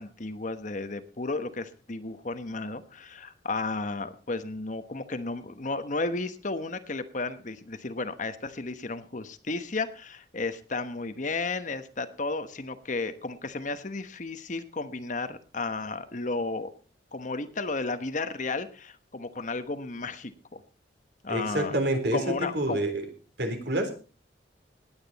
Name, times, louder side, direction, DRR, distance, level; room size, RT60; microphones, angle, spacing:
voice 1, 0.0-16.7 17.1-20.6 21.2-21.8 22.1-22.8, left 3 dB, 45° left, 10 dB, 1.1 m, -33 dB
voice 2, 21.3-23.1 23.4-23.9, right 1 dB, 65° right, 5 dB, 3.6 m, -28 dB
19.0 x 9.1 x 4.1 m, 0.37 s
head